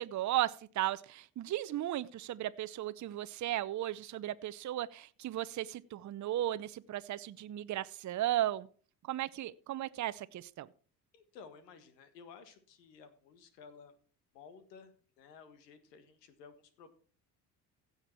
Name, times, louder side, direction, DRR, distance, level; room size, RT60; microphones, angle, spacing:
voice 1, 0.0-8.7 9.1-10.7, right 13 dB, 40° right, 0.7 m, -35 dB
voice 2, 11.1-13.9 14.3-16.9, left 5 dB, 85° left, 1.6 m, -55 dB
16.0 x 6.8 x 4.4 m
hypercardioid pair, 55°, 47 cm